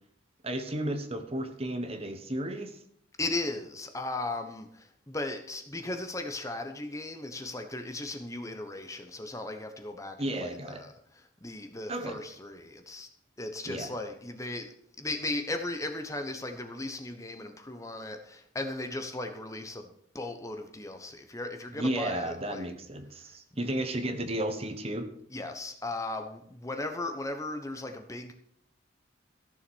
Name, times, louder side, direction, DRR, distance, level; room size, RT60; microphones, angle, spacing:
voice 1, 0.4-2.8 10.2-10.8 11.9-12.2 13.7-13.9 21.7-25.1, right 1 dB, 30° right, 8 dB, 1.2 m, -33 dB
voice 2, 3.2-13.1 13.4-14.7 15.0-19.9 20.1-22.7 23.3-23.4 25.3-28.3, left 2 dB, 15° left, 6 dB, 1.1 m, -37 dB
14.5 x 7.1 x 6.3 m, 0.68 s
head